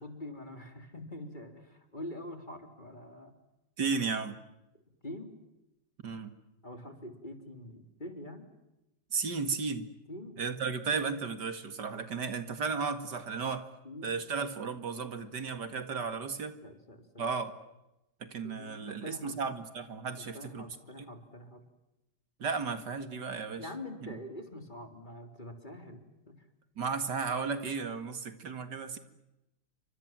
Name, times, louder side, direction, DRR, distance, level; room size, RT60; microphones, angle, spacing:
voice 1, 0.0-3.3 5.0-5.3 6.6-8.5 10.1-10.4 13.8-14.2 16.6-17.3 18.4-19.4 20.2-21.6 23.6-26.0 26.3-26.4, left 1 dB, 25° left, 6 dB, 3.8 m, -45 dB
voice 2, 3.8-4.4 6.0-6.3 9.1-9.9 10.4-13.6 14.0-16.6 17.2-17.5 18.3-20.6 22.4-23.7 24.0-24.1 26.8-29.0, right 5 dB, 75° right, 10 dB, 2.7 m, -34 dB
29.5 x 26.0 x 7.6 m, 0.92 s
omnidirectional pair, 1.8 m